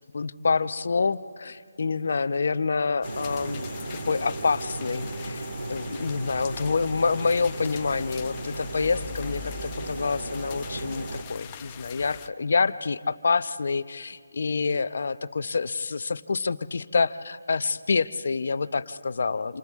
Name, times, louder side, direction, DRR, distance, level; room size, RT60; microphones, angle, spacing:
voice 1, 0.1-3.7 4.1-5.4 5.7-19.6, left 4 dB, 60° left, 13 dB, 0.8 m, -27 dB
sound 1, 3.0-12.3, left 9 dB, 20° left, 0.6 m, -43 dB
sound 2, 3.0-11.2, right 2 dB, 75° right, 3.1 m, -36 dB
29.0 x 28.0 x 3.6 m, 2.2 s
hypercardioid pair, 170°, 0 cm